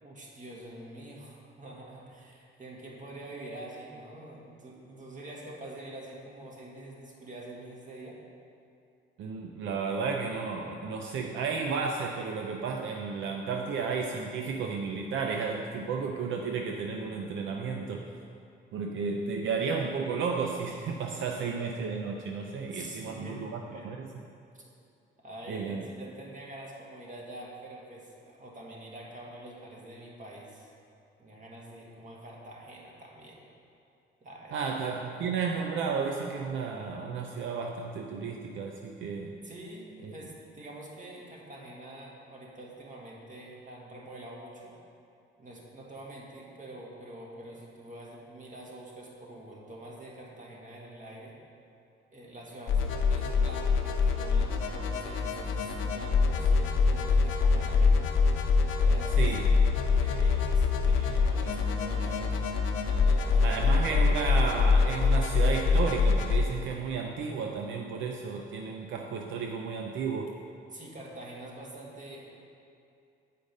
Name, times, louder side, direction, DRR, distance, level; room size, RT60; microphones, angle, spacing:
voice 1, 0.0-8.2 22.6-23.5 23.7-23.9 24.5-24.6 25.2-30.7 31.2-33.4 34.2-34.7 39.4-44.7 45.4-51.3 52.1-57.9 58.8-59.3 60.0-63.5 70.7-72.3, right 1 dB, 40° right, -3 dB, 1.8 m, -46 dB
voice 2, 9.2-18.1 18.7-24.2 25.5-25.8 34.5-39.3 40.0-40.1 59.2-59.5 63.4-70.4, right 5 dB, 75° right, 2 dB, 0.5 m, -33 dB
sound 1, 52.7-66.4, left 4 dB, 85° left, 0.8 m, -25 dB
8.4 x 5.1 x 5.2 m, 2.5 s
cardioid pair, 90°, 20 cm